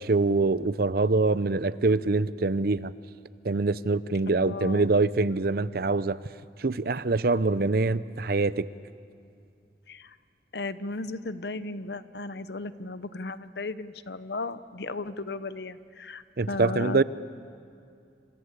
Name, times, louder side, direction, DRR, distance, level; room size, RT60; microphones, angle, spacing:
voice 1, 0.0-2.9 3.4-6.2 6.6-8.7 16.4-17.0, right 3 dB, 55° right, 16 dB, 0.7 m, -24 dB
voice 2, 4.3-4.9 9.9-10.2 10.5-17.0, left 3 dB, 65° left, 14 dB, 0.9 m, -35 dB
27.5 x 26.5 x 8.2 m, 2.4 s
head